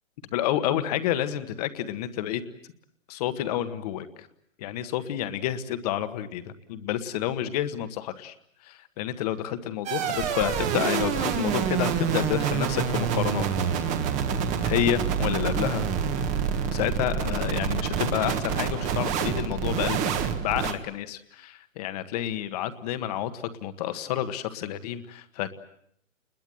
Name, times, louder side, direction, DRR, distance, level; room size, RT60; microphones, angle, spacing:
voice 1, 0.3-2.4 3.1-4.3 4.6-8.3 8.6-13.5 13.9-14.0 14.6-15.8 16.7-20.1 20.4-25.5, left 11 dB, 30° left, 11 dB, 1.6 m, -29 dB
sound 1, 9.9-20.7, right 7 dB, 20° right, 1.6 m, -27 dB
29.5 x 21.5 x 7.8 m, 0.71 s
hypercardioid pair, 155°, 40 cm